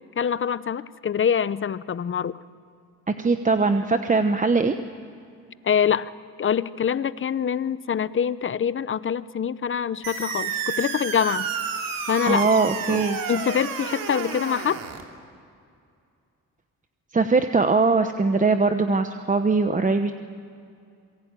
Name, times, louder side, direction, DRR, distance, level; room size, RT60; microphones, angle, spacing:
voice 1, 0.2-2.4 5.6-6.1 6.4-11.5 12.1-12.5 12.9-14.8, left 8 dB, 35° left, 16 dB, 0.8 m, -25 dB
voice 2, 3.1-4.8 12.3-13.2 17.1-20.1, right 4 dB, 25° right, 8 dB, 1.0 m, -21 dB
sound 1, 10.0-15.0, right 6 dB, 90° right, 2.9 m, -30 dB
27.0 x 22.5 x 9.1 m, 2.4 s
cardioid pair, 95°, 33 cm